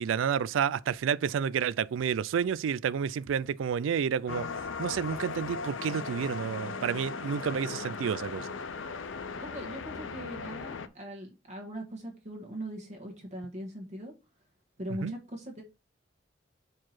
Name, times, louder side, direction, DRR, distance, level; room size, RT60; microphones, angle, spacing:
voice 1, 0.0-4.5 4.8-8.5 15.0-15.1, right 7 dB, 85° right, 0.3 m, -30 dB
sound 1, 4.3-10.9, left 4 dB, 85° left, 0.6 m, -38 dB
voice 2, 9.4-14.1 14.8-15.6, equal, 40° right, 1.4 m, -40 dB
4.7 x 4.5 x 5.7 m
head